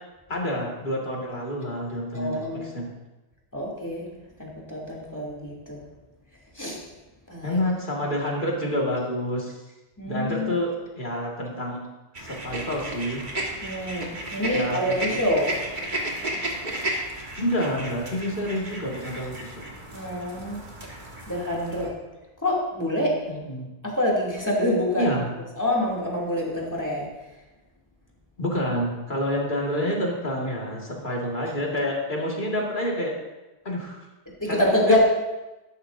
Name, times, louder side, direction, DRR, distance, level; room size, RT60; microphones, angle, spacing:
voice 1, 0.3-2.9 7.4-9.6 10.0-11.8 12.2-13.3 14.5-15.1 17.4-19.7 23.3-23.7 25.0-25.3 28.4-33.2 33.6-34.1 34.5-35.0, equal, 50° left, -2 dB, 2.2 m, -28 dB
voice 2, 2.1-2.7 3.5-4.1 4.4-5.8 6.5-6.8 7.3-7.6 10.0-10.5 13.6-15.5 19.9-20.6 21.3-21.9 22.4-23.2 23.8-25.1 25.6-27.1 34.4-35.0, left 1 dB, 15° left, -4 dB, 2.8 m, -26 dB
sound 1, 12.1-21.9, right 1 dB, 50° right, 1.7 m, -33 dB
12.5 x 11.5 x 2.7 m, 1.1 s
omnidirectional pair, 1.1 m